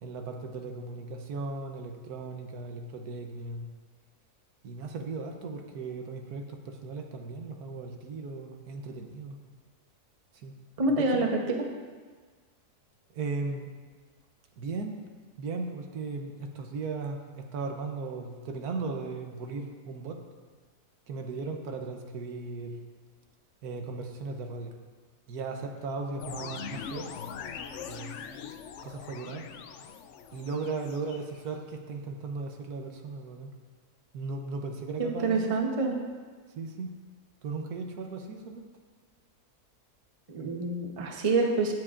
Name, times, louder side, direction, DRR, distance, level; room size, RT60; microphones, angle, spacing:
voice 1, 0.0-3.7 4.6-9.4 10.4-10.5 10.9-11.2 13.1-13.7 14.6-15.0 15.4-20.2 21.1-22.8 23.6-24.7 25.3-27.1 27.9-28.1 28.8-29.5 30.3-33.5 34.1-35.6 36.6-36.9 37.4-38.7, right 3 dB, 75° right, 4 dB, 1.3 m, -37 dB
voice 2, 10.8-11.6 35.0-36.0 40.3-41.7, right 3 dB, 30° right, 2 dB, 0.8 m, -27 dB
sound 1, 26.2-31.6, left 7 dB, 65° left, 0.7 m, -42 dB
17.0 x 7.6 x 2.5 m, 1.5 s
omnidirectional pair, 1.6 m